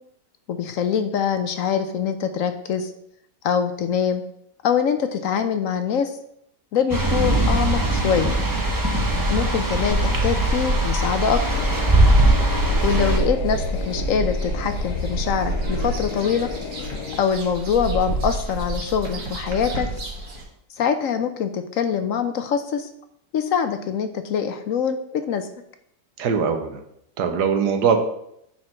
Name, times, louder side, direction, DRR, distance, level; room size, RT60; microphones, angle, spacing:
voice 1, 0.5-2.9 3.4-4.2 4.6-6.2 6.7-8.3 9.3-11.5 12.8-16.5 17.2-19.9 20.8-22.9 23.3-25.5, left 7 dB, 65° left, 9 dB, 0.9 m, -24 dB
sound 1, 6.9-13.2, right 1 dB, 15° right, 0.7 m, -20 dB
sound 2, 9.9-20.4, right 2 dB, 70° right, 1.8 m, -28 dB
sound 3, 11.4-17.2, left 9 dB, 90° left, 1.3 m, -34 dB
voice 2, 26.2-26.8 27.2-28.0, right 6 dB, 90° right, 6 dB, 1.5 m, -21 dB
9.7 x 4.4 x 4.4 m, 0.74 s
omnidirectional pair, 1.7 m